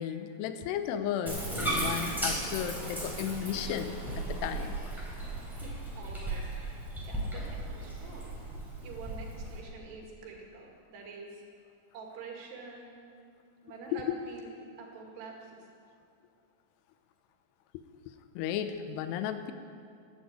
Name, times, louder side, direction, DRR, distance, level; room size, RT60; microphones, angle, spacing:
voice 1, 0.0-4.9 13.9-14.2 18.4-19.5, left 9 dB, 80° left, 9 dB, 2.7 m, -34 dB
Bathtub (filling or washing), 1.3-9.6, right 1 dB, ahead, 2.9 m, -36 dB
voice 2, 5.5-6.7 7.0-8.3 8.8-11.4 11.9-13.0 13.6-14.5 14.8-15.7, right 4 dB, 70° right, -1 dB, 4.1 m, -47 dB
11.5 x 10.5 x 8.4 m, 2.5 s
omnidirectional pair, 5.1 m